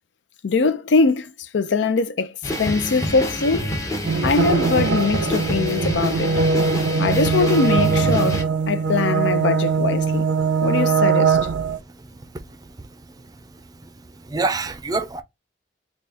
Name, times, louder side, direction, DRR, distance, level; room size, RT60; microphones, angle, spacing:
voice 1, 0.4-3.7 4.2-6.3 7.0-10.3 10.6-11.4, left 4 dB, 85° left, 0.5 m, -22 dB
sound 1, 2.4-8.4, equal, 20° left, 0.8 m, -27 dB
sound 2, 4.0-11.8, right 5 dB, 80° right, 0.4 m, -21 dB
voice 2, 14.2-15.2, right 3 dB, 20° right, 0.4 m, -26 dB
4.0 x 2.3 x 3.4 m
head